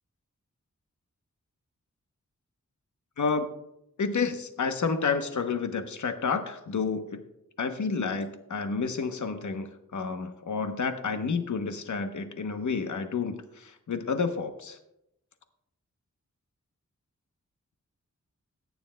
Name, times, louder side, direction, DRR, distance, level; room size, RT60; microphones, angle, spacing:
voice 1, 3.2-3.5 4.0-7.2 7.6-14.8, left 5 dB, 75° left, 7 dB, 0.9 m, -30 dB
21.5 x 9.5 x 2.2 m, 0.85 s
wide cardioid pair, 100°, 30 cm